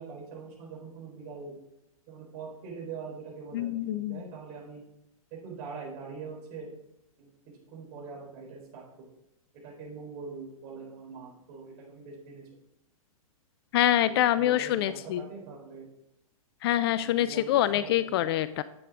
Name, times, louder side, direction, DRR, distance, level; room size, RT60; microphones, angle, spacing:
voice 1, 0.0-1.5 2.1-4.8 5.4-6.7 7.2-7.3 7.7-8.8 9.6-12.4 14.0-15.9 16.9-18.0, right 5 dB, 40° right, -2 dB, 4.4 m, -43 dB
voice 2, 3.5-4.2 13.7-15.2 16.6-18.6, left 12 dB, 40° left, 15 dB, 0.4 m, -25 dB
10.5 x 8.4 x 3.7 m, 0.83 s
figure-of-eight pair, 115°, 19 cm